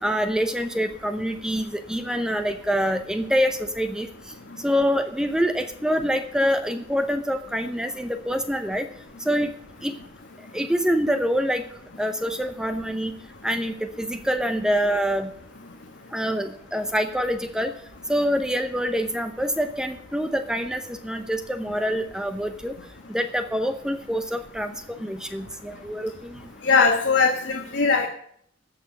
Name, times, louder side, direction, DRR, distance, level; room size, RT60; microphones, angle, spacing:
voice 1, 0.0-4.1 4.6-8.9 9.2-9.5 9.8-9.9 10.5-11.6 12.0-13.1 13.4-15.3 16.1-17.7 18.1-22.7 23.1-24.7 25.0-26.4, equal, 5° right, 8 dB, 0.7 m, -25 dB
voice 2, 26.6-28.1, left 4 dB, 80° left, 2 dB, 1.3 m, -20 dB
15.0 x 6.1 x 7.7 m, 0.63 s
head